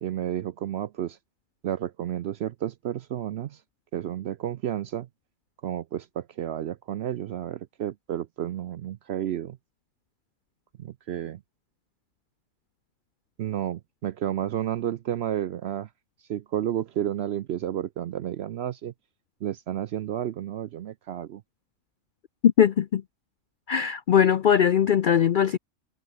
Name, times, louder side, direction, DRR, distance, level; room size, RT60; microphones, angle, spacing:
voice 1, 0.0-1.2 1.6-3.6 3.9-5.1 5.6-9.6 10.8-11.4 13.4-15.9 16.3-18.9 19.4-21.4, right 11 dB, 65° right, 0.6 m, -31 dB
voice 2, 22.4-23.0 23.7-25.6, left 9 dB, 70° left, 0.4 m, -20 dB
omnidirectional pair, 1.5 m